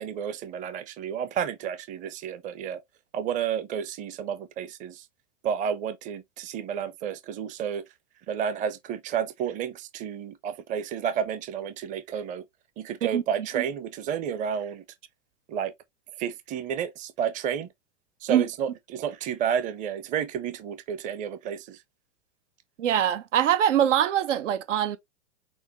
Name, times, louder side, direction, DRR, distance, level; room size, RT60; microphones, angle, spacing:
voice 1, 0.0-2.8 3.1-5.0 5.4-7.8 8.3-12.4 12.8-14.8 15.5-15.7 16.2-17.7 18.2-21.8, right 8 dB, 20° right, 0.6 m, -31 dB
voice 2, 22.8-25.0, right 10 dB, 90° right, 0.9 m, -23 dB
6.3 x 2.6 x 3.0 m
supercardioid pair, 140°, 35 cm